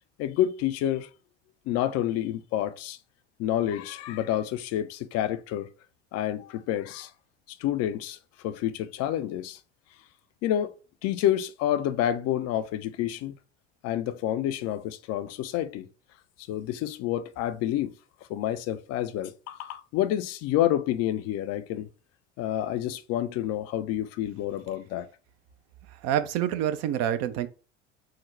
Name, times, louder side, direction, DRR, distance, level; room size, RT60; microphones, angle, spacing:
voice 1, 0.2-1.1 1.7-3.0 3.4-5.7 6.1-7.1 7.5-8.2 8.4-9.6 10.4-10.7 11.0-13.3 13.8-15.9 16.5-17.9 18.3-21.9 22.4-25.1, left 12 dB, 45° left, 0.4 m, -28 dB
voice 2, 25.9-27.5, right 10 dB, 45° right, 0.4 m, -27 dB
3.7 x 2.1 x 3.2 m
hypercardioid pair, 70°, 36 cm